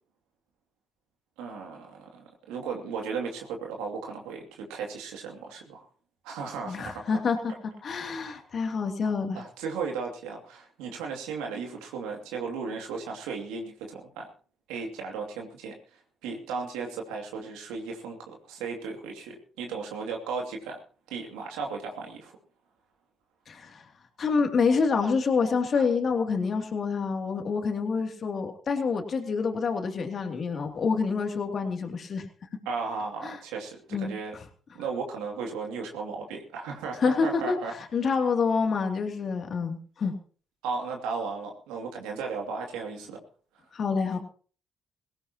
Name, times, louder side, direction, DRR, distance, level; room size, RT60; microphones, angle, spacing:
voice 1, 1.4-5.8 6.2-7.2 8.2-8.4 9.3-14.3 14.7-15.7 16.2-20.8 21.1-22.4 25.7-25.8 32.6-34.3 34.7-37.7 40.6-43.2, right 5 dB, 85° right, 1 dB, 2.6 m, -35 dB
voice 2, 6.7-7.5 7.8-9.4 23.5-23.9 24.2-32.3 33.2-33.4 33.9-34.1 37.0-40.1 43.7-44.2, left 5 dB, 55° left, 4 dB, 2.8 m, -27 dB
19.0 x 17.0 x 3.0 m, 0.41 s
hypercardioid pair, 50°, 0 cm